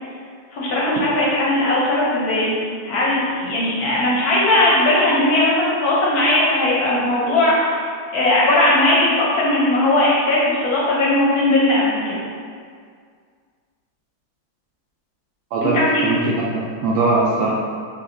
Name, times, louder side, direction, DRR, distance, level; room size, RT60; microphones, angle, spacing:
voice 1, 0.5-2.5 2.8-7.9 8.1-12.2 15.6-16.1, left 1 dB, 65° left, -5 dB, 1.0 m, -18 dB
voice 2, 15.5-17.5, right 3 dB, 75° right, -5 dB, 0.9 m, -21 dB
6.8 x 2.6 x 2.5 m, 2.1 s
omnidirectional pair, 2.1 m